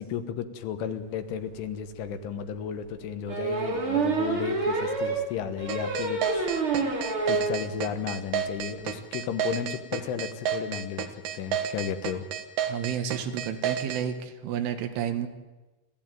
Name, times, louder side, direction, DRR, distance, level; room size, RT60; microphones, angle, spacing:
voice 1, 0.0-7.0 7.3-12.3, left 8 dB, 75° left, 9 dB, 3.7 m, -34 dB
sound 1, 1.5-1.6 2.0-2.1 3.3-7.6 8.0-8.1 8.3-8.4 8.6-8.9, right 3 dB, 30° right, 3.9 m, -28 dB
sound 2, 5.7-14.0, right 9 dB, 60° right, 2.6 m, -30 dB
voice 2, 12.7-15.3, right 9 dB, 80° right, 8 dB, 4.0 m, -31 dB
28.5 x 14.5 x 9.2 m, 1.2 s
omnidirectional pair, 5.7 m